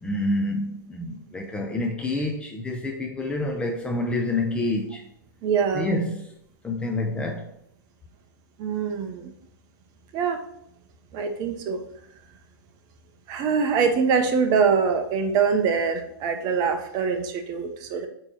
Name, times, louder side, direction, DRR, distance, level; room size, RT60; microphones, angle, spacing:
voice 1, 0.0-5.0 5.7-6.2 6.6-7.5, left 2 dB, 10° left, 0.5 m, -27 dB
voice 2, 5.4-5.9 8.6-9.3 10.1-10.4 11.1-11.8 13.3-18.1, right 6 dB, 30° right, 0.8 m, -24 dB
8.7 x 3.1 x 4.3 m
hypercardioid pair, 145°, 12 cm